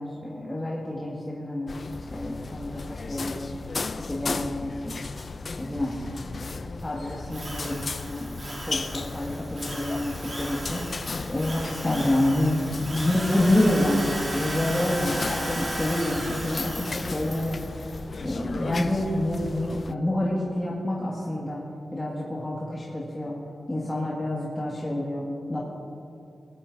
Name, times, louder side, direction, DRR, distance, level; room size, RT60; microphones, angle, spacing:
voice 1, 0.0-1.7 2.1-3.5 3.9-5.0 5.4-8.3 8.6-17.9 18.2-21.6 21.9-23.4 23.7-25.6, left 1 dB, 15° left, -6 dB, 2.0 m, -28 dB
sound 1, 1.7-19.9, left 4 dB, 45° left, 0.4 m, -36 dB
Drill, 7.3-17.7, right 1 dB, 35° right, 3.0 m, -36 dB
20.0 x 12.0 x 2.7 m, 2.6 s
wide cardioid pair, 105°, 0 cm